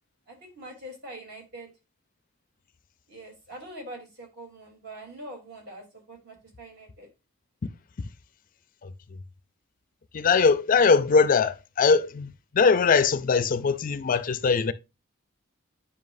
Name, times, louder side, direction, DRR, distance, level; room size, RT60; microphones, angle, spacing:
voice 1, 0.3-1.7 3.1-7.1, right 1 dB, 50° right, 3.4 m, -43 dB
voice 2, 10.1-12.3 12.5-14.7, left 5 dB, 40° left, 0.4 m, -21 dB
9.5 x 5.7 x 2.6 m
head